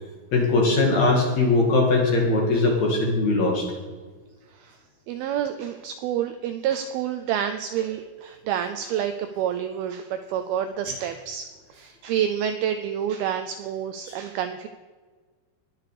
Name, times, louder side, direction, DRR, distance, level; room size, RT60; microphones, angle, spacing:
voice 1, 0.3-3.6 14.1-14.2, left 3 dB, 50° left, -1 dB, 2.5 m, -20 dB
voice 2, 5.1-14.7, right 9 dB, 90° right, 9 dB, 2.2 m, -28 dB
20.0 x 6.9 x 4.9 m, 1.4 s
omnidirectional pair, 5.0 m